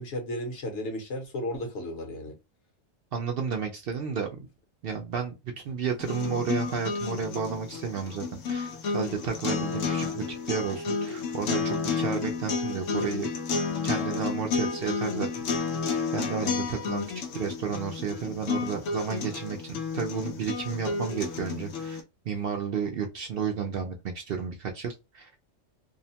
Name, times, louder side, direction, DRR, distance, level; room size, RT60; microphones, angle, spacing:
voice 1, 0.0-2.3, left 1 dB, 65° left, 1.2 m, -34 dB
voice 2, 3.1-4.3 4.8-5.3 5.6-13.3 13.8-15.7 16.1-17.0 17.3-25.3, right 6 dB, 60° right, 0.6 m, -32 dB
sound 1, 6.0-22.0, left 5 dB, 85° left, 1.0 m, -31 dB
2.7 x 2.1 x 2.7 m
omnidirectional pair, 1.3 m